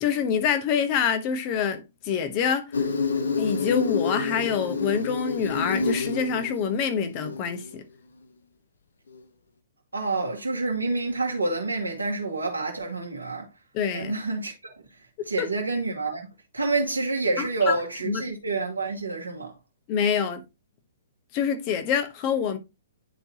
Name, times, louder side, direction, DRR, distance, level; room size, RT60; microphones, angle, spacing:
voice 1, 0.0-2.7 3.4-7.8 13.7-14.1 15.4-15.5 17.4-17.8 18.0-18.2 19.9-20.4 21.3-22.6, left 7 dB, 35° left, 1.1 m, -26 dB
Insect, 2.7-7.7, left 4 dB, 70° left, 0.9 m, -29 dB
voice 2, 9.9-13.5 13.9-14.7 15.3-16.3 16.5-19.5, right 3 dB, 85° right, 1.6 m, -28 dB
9.9 x 4.0 x 2.8 m
figure-of-eight pair, 120°, 0 cm